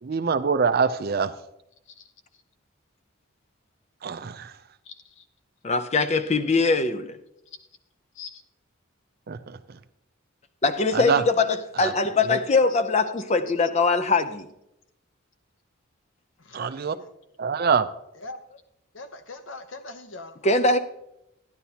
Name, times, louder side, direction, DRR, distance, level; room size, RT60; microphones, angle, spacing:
voice 1, 0.0-1.4 4.0-4.6 9.3-9.8 10.9-11.2 11.8-11.9 12.3-12.4 16.5-17.0 17.4-17.9, right 5 dB, 45° right, 0.4 m, -25 dB
voice 2, 4.8-5.3 7.5-7.6 8.1-8.4 13.5-13.6 16.4-17.1 18.1-18.6 18.9-20.5, left 3 dB, 60° left, 0.8 m, -43 dB
voice 3, 5.6-7.2 10.6-14.5 20.4-20.8, left 3 dB, 30° left, 0.5 m, -22 dB
14.0 x 10.5 x 2.8 m
head